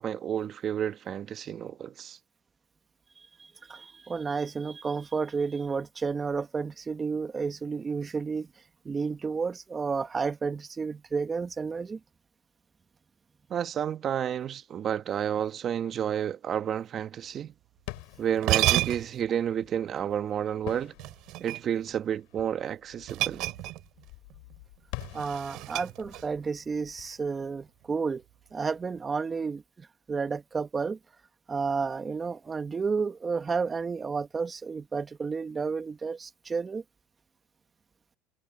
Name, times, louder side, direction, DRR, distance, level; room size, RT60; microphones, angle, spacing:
voice 1, 0.0-2.2 13.5-17.5 18.2-20.9 21.4-23.4, right 9 dB, 40° right, 1.3 m, -31 dB
voice 2, 3.7-8.5 8.8-12.0 25.1-28.2 28.5-29.6 30.1-31.0 31.5-36.8, right 5 dB, 25° right, 1.5 m, -31 dB
sound 1, 17.8-28.4, left 32 dB, 70° left, 7.5 m, -47 dB
sound 2, 18.0-18.1 18.4-19.3 21.0-21.9 23.1-24.0 24.3-24.5 25.0-26.4, right 18 dB, 60° right, 3.6 m, -30 dB
supercardioid pair, 105°, 0 cm